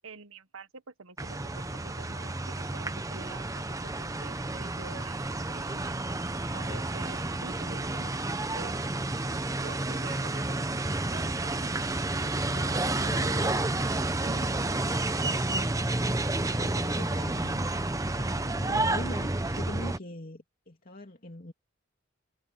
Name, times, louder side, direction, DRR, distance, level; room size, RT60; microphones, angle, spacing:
voice 1, 0.0-5.8 6.5-8.8 9.6-11.8 12.1-13.4 14.2-14.6, right 4 dB, 85° right, 1.4 m, -47 dB
sound 1, 1.2-20.0, right 2 dB, 15° right, 0.8 m, -30 dB
voice 2, 12.8-13.8 14.6-15.8 16.1-21.5, left 1 dB, 45° left, 3.0 m, -43 dB
head